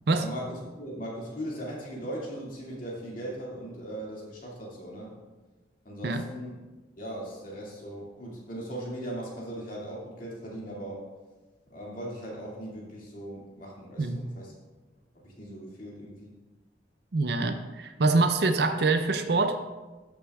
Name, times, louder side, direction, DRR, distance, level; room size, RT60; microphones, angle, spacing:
voice 1, 0.2-5.1 5.8-6.6 7.0-11.0 11.7-14.5 15.1-16.3, right 1 dB, 45° left, -4 dB, 2.2 m, -39 dB
voice 2, 17.1-19.6, right 3 dB, 60° right, 8 dB, 0.5 m, -25 dB
12.5 x 6.2 x 2.3 m, 1.2 s
head